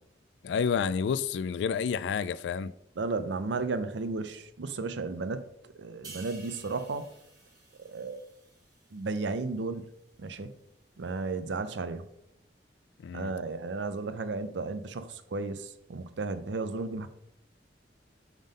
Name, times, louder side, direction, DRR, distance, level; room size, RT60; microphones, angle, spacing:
voice 1, 0.4-2.7 13.0-13.3, left 6 dB, 80° left, 0.3 m, -29 dB
voice 2, 3.0-5.5 5.8-7.1 7.9-8.2 8.9-9.8 10.2-10.5 11.0-12.1 13.1-17.1, right 3 dB, 85° right, 0.5 m, -34 dB
sound 1, 6.0-9.6 10.0-10.2, right 3 dB, 20° right, 1.6 m, -52 dB
5.4 x 3.7 x 5.1 m
head